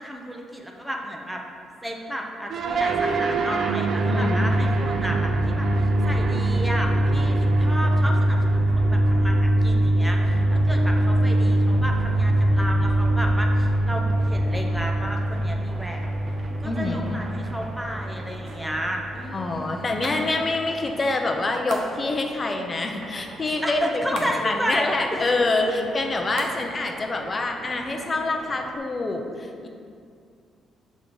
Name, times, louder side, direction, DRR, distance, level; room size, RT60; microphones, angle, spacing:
voice 1, 0.0-1.4 1.8-16.2 16.6-20.0 23.6-25.8, equal, 5° right, 1 dB, 0.8 m, -32 dB
sound 1, 2.5-20.8, right 1 dB, 55° right, 0.4 m, -23 dB
voice 2, 4.1-4.5 16.6-17.2 19.3-25.7 25.9-29.7, left 2 dB, 30° left, 3 dB, 0.7 m, -26 dB
sound 2, 10.1-28.8, right 2 dB, 40° right, 0.8 m, -45 dB
sound 3, 18.4-18.8 20.0-20.3 21.7-22.2 24.1-24.6 26.4-26.9 27.1-28.1, right 2 dB, 80° right, 0.9 m, -38 dB
6.4 x 3.7 x 5.2 m, 2.3 s
cardioid pair, 100°, 0 cm